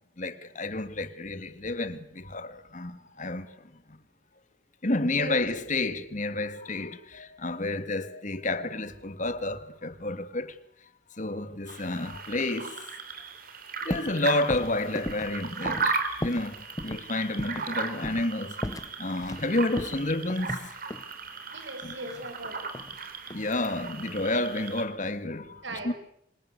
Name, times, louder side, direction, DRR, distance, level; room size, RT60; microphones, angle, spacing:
voice 1, 0.2-3.5 3.9-4.0 4.8-10.6 11.2-12.8 13.9-18.6 19.0-20.7 21.8-21.9 23.3-25.9, left 2 dB, 40° left, 1.9 m, -30 dB
voice 2, 5.0-5.4 21.5-22.7 25.6-25.9, right 1 dB, 75° right, 6.9 m, -39 dB
sound 1, 11.7-24.8, right 4 dB, 50° right, 4.0 m, -36 dB
sound 2, 13.9-14.2 14.5-16.5 16.8-17.0 17.4-17.7 18.0-18.3 18.6-19.5 19.8-21.1 22.1-23.0 23.3-23.7, left 1 dB, 20° left, 1.0 m, -36 dB
27.0 x 25.5 x 8.2 m
head